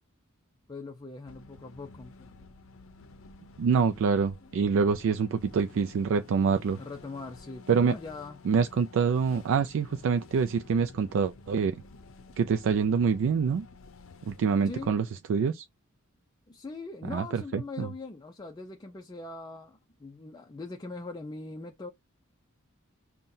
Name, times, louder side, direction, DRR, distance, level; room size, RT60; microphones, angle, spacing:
voice 1, 0.7-2.3 4.3-4.5 6.8-8.4 14.6-14.9 16.5-21.9, left 3 dB, 20° left, 0.4 m, -41 dB
sound 1, 1.3-14.9, left 3 dB, 70° left, 0.6 m, -51 dB
voice 2, 3.6-6.8 7.7-7.9 8.5-11.8 12.4-13.7 14.3-15.0 15.3-15.6 17.1-17.9, right 6 dB, 65° right, 0.3 m, -26 dB
5.5 x 2.2 x 2.6 m
head